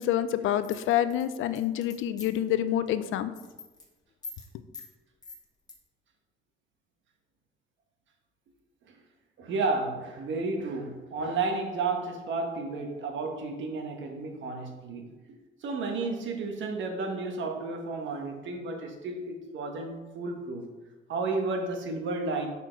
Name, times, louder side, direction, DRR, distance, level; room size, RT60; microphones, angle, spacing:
voice 1, 0.0-3.3, left 11 dB, 80° left, 12 dB, 0.4 m, -27 dB
sound 1, 0.6-2.5 2.9-3.1 3.4-3.9 4.2-4.5 4.7-4.9 5.2-5.7, left 4 dB, 20° left, 1.3 m, -44 dB
voice 2, 9.4-15.1 15.6-20.7 21.1-22.5, right 3 dB, 70° right, 3 dB, 1.2 m, -32 dB
5.8 x 4.3 x 4.5 m, 1.2 s
cardioid pair, 90°, 20 cm